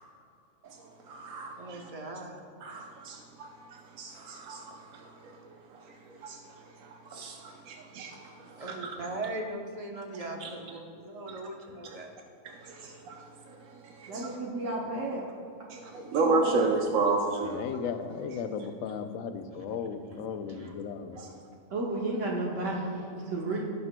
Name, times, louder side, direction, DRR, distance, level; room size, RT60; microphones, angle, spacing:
voice 1, 0.6-1.9 2.6-9.0 10.4-10.5 11.3-11.4 11.8-12.0 12.4-14.4 15.7-17.7 21.2-21.3, right 3 dB, 90° right, 2 dB, 1.1 m, -33 dB
voice 2, 1.6-2.4 8.6-12.1 19.5-19.7 20.5-20.8, right 2 dB, 30° right, 1 dB, 0.9 m, -39 dB
voice 3, 14.1-15.3 16.2-16.7 21.7-23.6, right 2 dB, 70° right, -3 dB, 1.3 m, -32 dB
voice 4, 17.4-21.4, left 6 dB, 85° left, 8 dB, 1.0 m, -36 dB
16.5 x 6.7 x 2.2 m, 2.5 s
omnidirectional pair, 1.3 m